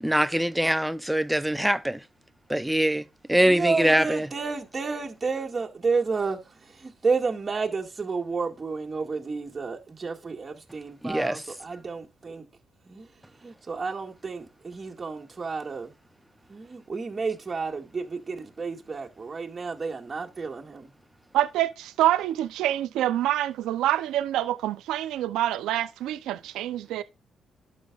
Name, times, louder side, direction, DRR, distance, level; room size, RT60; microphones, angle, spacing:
voice 1, 0.0-2.0 2.5-4.3 11.0-11.4, equal, 5° right, 0.6 m, -23 dB
voice 2, 3.4-12.4 12.9-13.0 13.4-15.9 16.5-20.9, right 4 dB, 30° right, 2.0 m, -31 dB
voice 3, 21.3-27.0, right 13 dB, 90° right, 0.6 m, -26 dB
11.5 x 6.5 x 2.5 m
cardioid pair, 90°, 0 cm